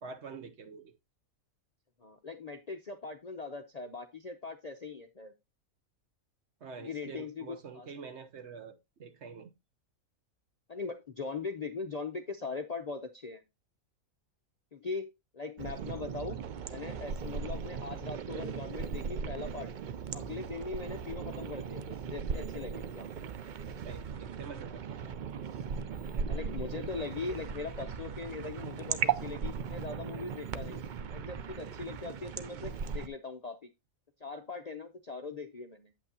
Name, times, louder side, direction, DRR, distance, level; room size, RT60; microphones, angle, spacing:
voice 1, 0.0-0.9 6.6-9.5 23.7-25.1 28.8-29.0, right 5 dB, 55° right, 1.1 m, -46 dB
voice 2, 2.0-5.3 6.8-7.9 10.7-13.4 14.7-16.4 16.7-19.7 20.1-23.2 26.3-30.8 31.1-33.7 34.2-35.9, left 4 dB, 45° left, 0.5 m, -40 dB
sound 1, 15.6-33.1, right 6 dB, 80° right, 0.4 m, -38 dB
8.4 x 8.2 x 2.8 m
omnidirectional pair, 1.5 m